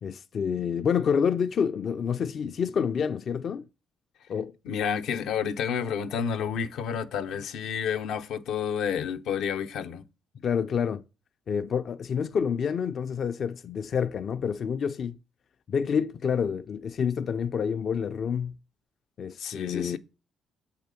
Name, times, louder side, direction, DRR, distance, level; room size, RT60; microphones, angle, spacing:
voice 1, 0.0-3.7 4.3-4.5 10.4-11.0 11.5-15.2 15.7-18.5 19.2-20.0, left 7 dB, 55° left, 0.4 m, -28 dB
voice 2, 4.6-10.0 19.4-20.0, left 7 dB, 85° left, 0.7 m, -30 dB
7.4 x 4.5 x 6.7 m
cardioid pair, 90°, 0 cm